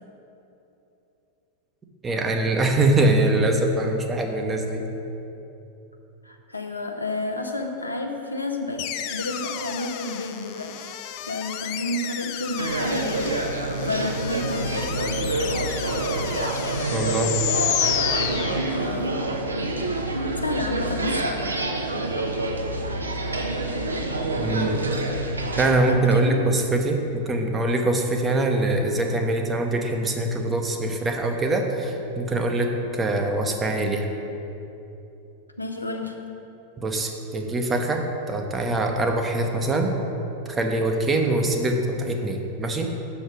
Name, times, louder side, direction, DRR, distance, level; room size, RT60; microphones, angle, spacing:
voice 1, 2.0-4.9 16.9-17.3 24.4-24.9 25.6-34.1 36.8-39.9 40.5-42.9, right 2 dB, 20° right, 3 dB, 0.8 m, -23 dB
voice 2, 6.2-10.9 11.3-15.1 18.7-19.1 20.4-21.5 25.9-26.4 35.6-36.2, left 2 dB, 85° left, 3 dB, 0.6 m, -31 dB
sound 1, 8.8-19.1, left 11 dB, 45° left, 0.4 m, -31 dB
sound 2, 12.6-25.7, right 2 dB, 75° right, 0.6 m, -27 dB
6.2 x 5.2 x 6.4 m, 2.9 s
figure-of-eight pair, 90°, 0 cm